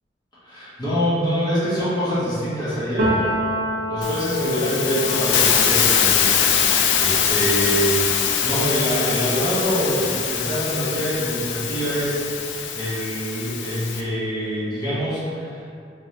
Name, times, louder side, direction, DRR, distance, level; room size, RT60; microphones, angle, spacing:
voice 1, 0.4-3.3 3.9-6.3 6.6-15.6, equal, 25° left, -12 dB, 1.1 m, -25 dB
Piano, 3.0-10.6 10.9-12.5, equal, 85° right, 0.8 m, -30 dB
Hiss, 4.0-14.0, left 7 dB, 80° left, 0.3 m, -22 dB
3.5 x 3.1 x 2.7 m, 2.4 s
head